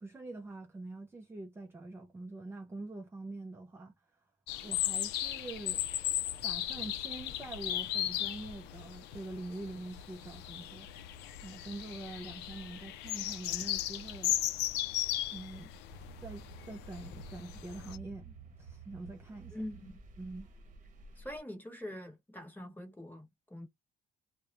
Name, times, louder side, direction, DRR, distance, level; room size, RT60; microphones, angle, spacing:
voice 1, 0.0-3.9 4.6-5.9 6.4-10.9 11.4-14.4 15.3-15.7 16.2-19.6 20.2-20.5, right 2 dB, 15° right, 0.4 m, -45 dB
sound 1, 4.5-18.0, left 12 dB, 85° left, 0.4 m, -36 dB
sound 2, 15.9-21.4, right 4 dB, 50° right, 0.9 m, -52 dB
voice 2, 19.5-20.0 21.2-23.6, left 1 dB, 10° left, 1.0 m, -44 dB
2.3 x 2.0 x 2.9 m
cardioid pair, 110°, 17 cm